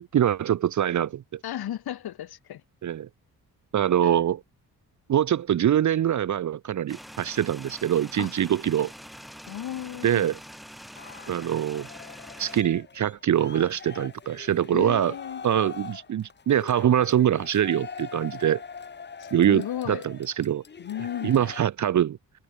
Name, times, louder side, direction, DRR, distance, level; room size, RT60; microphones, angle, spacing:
voice 1, 0.0-1.4 2.8-3.1 3.7-4.4 5.1-8.9 10.0-10.4 11.3-11.9 12.4-15.1 15.4-18.6 19.3-20.6 21.2-22.2, right 10 dB, 50° right, 0.9 m, -24 dB
voice 2, 1.4-2.6 4.0-4.2 8.2-8.3 9.5-10.4 14.7-15.4 19.2-20.1 20.8-21.4, left 11 dB, 80° left, 3.2 m, -34 dB
sound 1, 6.9-12.6, equal, ahead, 2.3 m, -45 dB
sound 2, 10.9-21.7, left 6 dB, 30° left, 1.3 m, -42 dB
wide cardioid pair, 155°, 37 cm